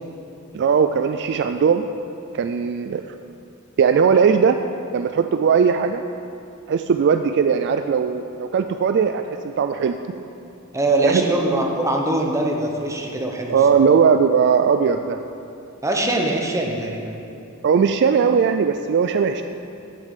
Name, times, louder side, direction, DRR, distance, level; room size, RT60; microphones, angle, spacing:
voice 1, 0.5-1.8 2.3-3.0 3.8-4.6 4.9-6.0 6.7-10.0 11.0-11.2 13.5-15.2 17.6-19.4, right 6 dB, 55° right, 8 dB, 0.3 m, -18 dB
voice 2, 10.7-13.8 15.8-17.1, right 1 dB, 15° right, 1 dB, 1.0 m, -22 dB
8.3 x 6.7 x 7.4 m, 2.6 s
head